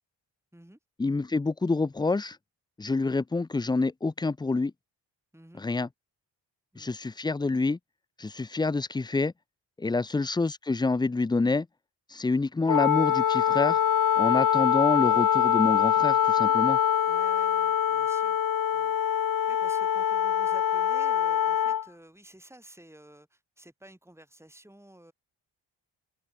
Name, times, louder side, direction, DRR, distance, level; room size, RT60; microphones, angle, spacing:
voice 1, 1.0-2.4 2.8-4.7 5.6-5.9 6.8-7.8 8.2-9.3 9.8-11.7 12.1-13.8 14.2-16.8, left 3 dB, 10° left, 0.3 m, -27 dB
voice 2, 5.3-5.6 6.7-6.9 9.8-10.0 17.1-18.4 18.7-19.0 19.5-25.1, right 1 dB, 5° right, 4.5 m, -52 dB
Wind instrument woodwind instrument, 12.7-21.8, left 9 dB, 45° left, 0.8 m, -24 dB
open air
cardioid pair, 50°, 47 cm